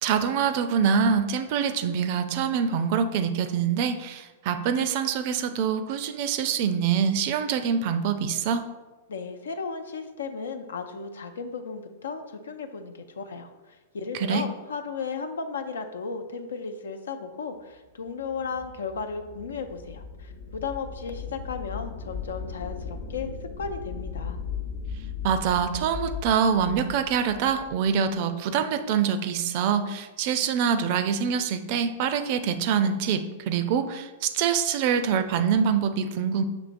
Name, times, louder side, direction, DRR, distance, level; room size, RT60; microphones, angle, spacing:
voice 1, 0.0-8.6 14.2-14.4 25.2-36.4, right 7 dB, 55° right, 9 dB, 0.4 m, -25 dB
voice 2, 9.1-24.4, left 5 dB, 85° left, 7 dB, 0.4 m, -35 dB
sound 1, 17.9-28.1, left 6 dB, 50° left, 0.7 m, -38 dB
6.0 x 3.0 x 2.5 m, 1.2 s
hypercardioid pair, 120°, 0 cm